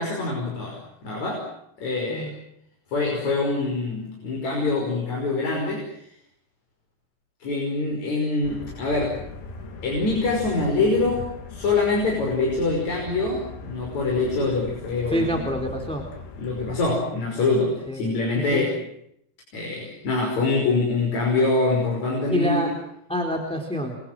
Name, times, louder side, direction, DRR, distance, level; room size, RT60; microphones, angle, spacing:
voice 1, 0.0-1.5 1.8-2.3 2.9-5.9 7.4-9.2 9.8-15.4 16.4-18.8 19.5-22.7, left 3 dB, 40° left, -1 dB, 6.6 m, -24 dB
sound 1, 8.4-16.9, left 4 dB, 75° left, 5.8 m, -39 dB
voice 2, 15.1-16.0 17.9-18.0 18.5-18.6 22.3-22.7 23.1-24.0, equal, ahead, 3 dB, 3.1 m, -26 dB
29.5 x 24.0 x 7.8 m, 0.73 s
omnidirectional pair, 5.3 m